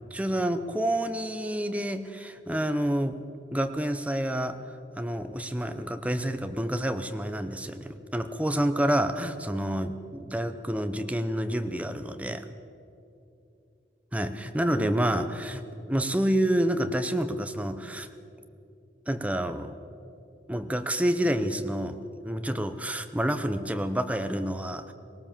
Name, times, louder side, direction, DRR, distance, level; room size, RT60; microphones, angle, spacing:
voice 1, 0.1-3.2 3.5-4.6 5.0-12.5 14.1-18.1 19.1-19.7 20.5-24.9, right 1 dB, 10° right, 9 dB, 0.8 m, -28 dB
19.0 x 18.5 x 7.3 m, 2.6 s
head